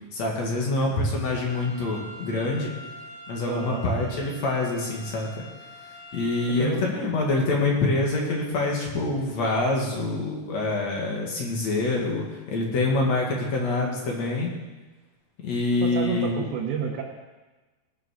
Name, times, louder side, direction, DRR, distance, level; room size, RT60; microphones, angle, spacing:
voice 1, 0.1-2.7 3.3-5.3 6.1-14.5 15.4-16.4, left 2 dB, 45° left, -1 dB, 2.6 m, -26 dB
sound 1, 1.4-6.4, equal, 75° left, 6.7 m, -44 dB
voice 2, 3.5-3.8 6.6-6.8 15.8-17.0, right 8 dB, 75° right, -2 dB, 3.5 m, -29 dB
19.0 x 6.8 x 6.5 m, 1.2 s
omnidirectional pair, 5.2 m